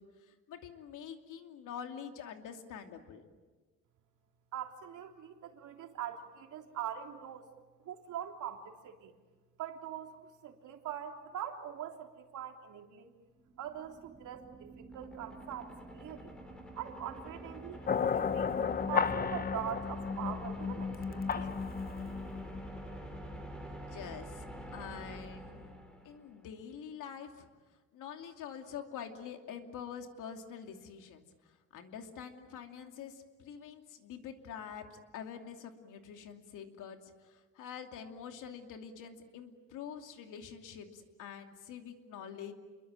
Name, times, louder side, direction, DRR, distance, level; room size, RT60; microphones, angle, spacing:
voice 1, 0.0-3.2 23.7-24.4 24.7-25.8 26.0-27.5 27.9-42.5, left 7 dB, 85° left, 5 dB, 2.8 m, -46 dB
voice 2, 4.5-7.4 7.8-9.1 9.6-13.1 13.6-16.3 16.7-18.5 18.9-21.6, right 10 dB, 75° right, 3 dB, 3.4 m, -42 dB
sound 1, 13.3-26.4, right 1 dB, 5° left, 3.3 m, -47 dB
sound 2, 17.9-23.2, left 6 dB, 30° left, 0.9 m, -33 dB
28.5 x 22.5 x 9.0 m, 1.3 s
cardioid pair, 150°, 30 cm